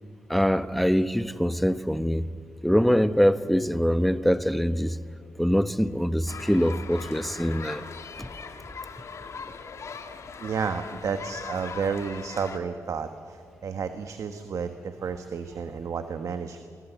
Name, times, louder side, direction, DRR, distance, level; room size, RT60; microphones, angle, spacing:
voice 1, 0.3-2.3 2.6-5.0 5.4-7.8 8.2-8.3, equal, ahead, 0.9 m, -23 dB
sound 1, 6.3-12.6, left 5 dB, 55° left, 2.0 m, -40 dB
voice 2, 10.4-16.6, right 6 dB, 60° right, 1.3 m, -31 dB
28.0 x 23.5 x 8.1 m
cardioid pair, 100°, 6 cm